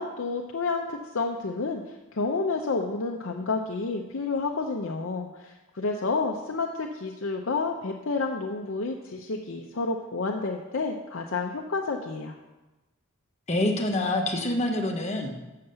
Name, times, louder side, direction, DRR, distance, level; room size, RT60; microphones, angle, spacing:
voice 1, 0.0-12.3, left 3 dB, 60° left, 1 dB, 0.6 m, -30 dB
voice 2, 13.5-15.4, left 1 dB, 30° left, 2 dB, 1.1 m, -26 dB
7.1 x 6.6 x 6.7 m, 1.1 s
head